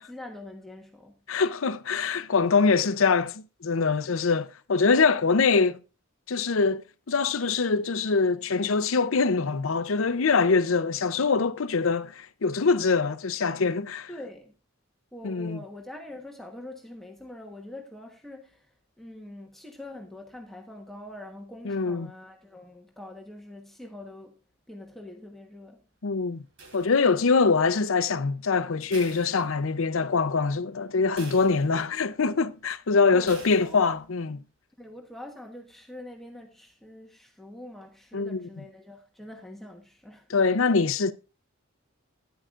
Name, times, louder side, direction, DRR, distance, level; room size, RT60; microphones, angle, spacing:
voice 1, 0.0-1.2 14.1-14.5 15.1-24.4 24.7-25.8 33.1-33.9 34.8-40.3, left 1 dB, ahead, 1.2 m, -44 dB
voice 2, 1.3-5.8 6.3-14.1 15.2-15.6 21.6-22.1 26.0-26.4 26.7-34.4 38.1-38.5 40.3-41.1, left 4 dB, 70° left, 0.7 m, -24 dB
sound 1, 26.6-27.4 28.9-30.0 30.4-30.5 31.2-32.1 33.3-34.0, right 3 dB, 65° right, 3.4 m, -47 dB
13.0 x 10.5 x 2.5 m
head